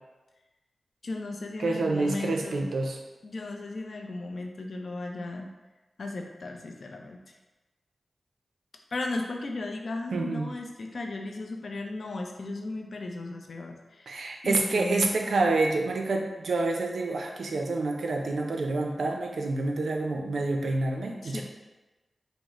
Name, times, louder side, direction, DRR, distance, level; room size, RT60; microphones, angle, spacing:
voice 1, 1.0-2.7 3.2-5.5 6.0-7.2 8.9-15.1 21.1-21.4, left 2 dB, 70° left, 2 dB, 0.5 m, -35 dB
voice 2, 1.6-3.0 10.1-10.5 14.1-21.4, right 3 dB, 90° right, 2 dB, 0.5 m, -28 dB
5.1 x 2.0 x 3.6 m, 1.1 s
wide cardioid pair, 65°, 0 cm